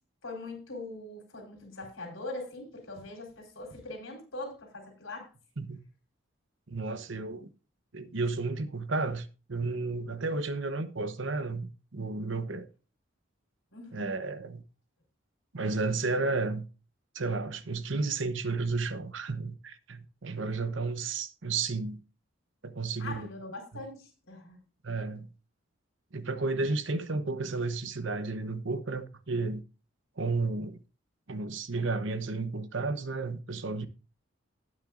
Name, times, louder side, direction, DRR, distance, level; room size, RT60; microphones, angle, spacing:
voice 1, 0.2-5.3 13.7-14.1 23.0-24.6, left 2 dB, 80° left, 4.2 m, -42 dB
voice 2, 6.7-7.5 7.9-12.7 13.9-14.6 15.5-16.7 17.1-22.0 22.6-23.3 23.7-23.8 24.8-25.3 26.1-29.6 30.2-30.8 31.3-33.9, right 3 dB, 70° right, 0.9 m, -32 dB
18.5 x 6.4 x 2.5 m
head